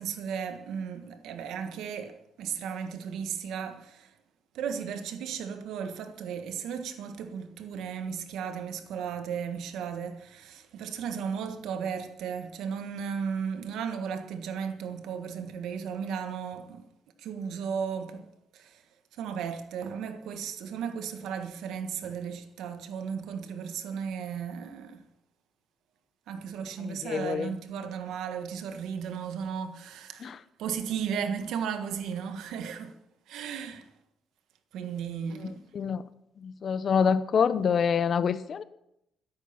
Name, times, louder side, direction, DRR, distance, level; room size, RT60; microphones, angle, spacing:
voice 1, 0.0-4.1 4.5-16.8 17.2-18.8 19.1-25.0 26.3-30.3 30.6-32.9 33.3-33.9 34.7-35.7, right 7 dB, 85° right, 1.6 m, -35 dB
voice 2, 26.8-27.5 30.2-30.4 35.7-36.0 36.4-38.6, left 6 dB, 55° left, 0.8 m, -26 dB
13.0 x 10.5 x 5.8 m
cardioid pair, 90°, 0 cm